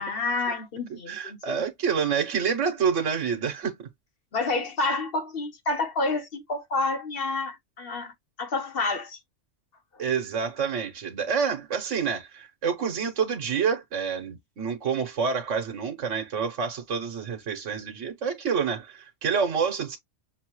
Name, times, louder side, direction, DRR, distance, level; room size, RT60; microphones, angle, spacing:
voice 1, 0.0-1.4 4.3-8.1 8.4-9.2, left 3 dB, 55° left, 1.2 m, -29 dB
voice 2, 1.1-3.9 10.0-20.0, right 6 dB, 90° right, 1.4 m, -28 dB
6.5 x 2.3 x 3.0 m
omnidirectional pair, 1.2 m